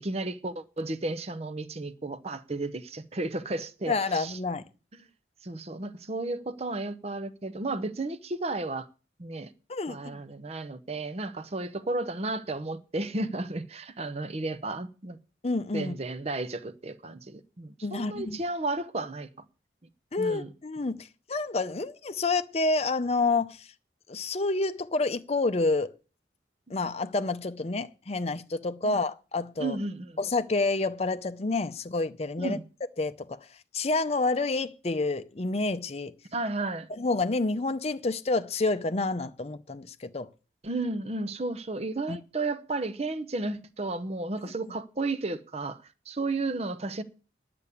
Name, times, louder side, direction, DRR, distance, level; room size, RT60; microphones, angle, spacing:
voice 1, 0.0-4.4 5.4-8.9 9.2-9.5 9.9-15.2 15.7-19.3 20.2-20.5 28.8-29.0 29.6-30.2 32.4-32.6 36.3-36.9 40.6-47.0, right 2 dB, 35° right, 0.7 m, -33 dB
voice 2, 3.9-4.6 9.7-10.2 15.4-15.9 17.8-18.4 20.1-21.0 21.3-23.7 24.1-25.9 26.7-29.8 30.2-32.6 33.0-33.4 33.7-36.1 36.9-40.3 42.1-42.2 44.4-44.5, left 3 dB, 35° left, 0.6 m, -28 dB
10.5 x 6.8 x 8.3 m
head